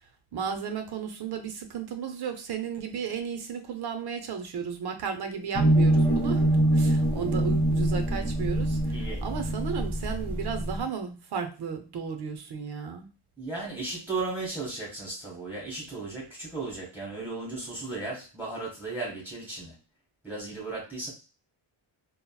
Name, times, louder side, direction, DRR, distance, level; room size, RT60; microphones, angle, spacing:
voice 1, 0.3-8.8 9.2-13.1, right 6 dB, 50° right, 6 dB, 0.6 m, -34 dB
sound 1, 5.5-10.8, right 1 dB, 10° left, 0.9 m, -24 dB
voice 2, 8.9-9.2 13.4-19.7 20.2-21.1, right 3 dB, 5° right, -5 dB, 1.4 m, -35 dB
3.8 x 2.0 x 2.2 m, 0.32 s
wide cardioid pair, 170°, 49 cm